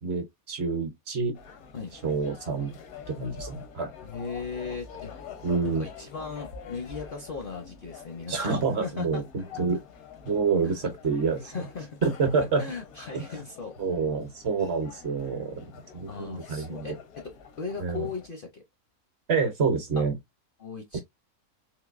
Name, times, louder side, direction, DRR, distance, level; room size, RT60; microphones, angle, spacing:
voice 1, 0.0-1.4 2.0-2.8 3.1-3.9 5.4-5.9 8.3-9.8 10.3-11.6 12.0-12.6 13.1-13.4 13.8-15.7 15.9-17.0 17.8-18.1 19.3-20.2, right 4 dB, 55° right, 0.9 m, -27 dB
sound 1, 1.3-18.3, left 6 dB, 75° left, 1.2 m, -46 dB
voice 2, 4.0-5.1 5.6-9.2 10.6-10.8 11.5-12.0 12.6-13.7 16.1-17.2 17.6-18.6 20.0-20.1 20.6-21.0, left 5 dB, 55° left, 0.6 m, -37 dB
3.8 x 2.6 x 2.4 m
omnidirectional pair, 1.5 m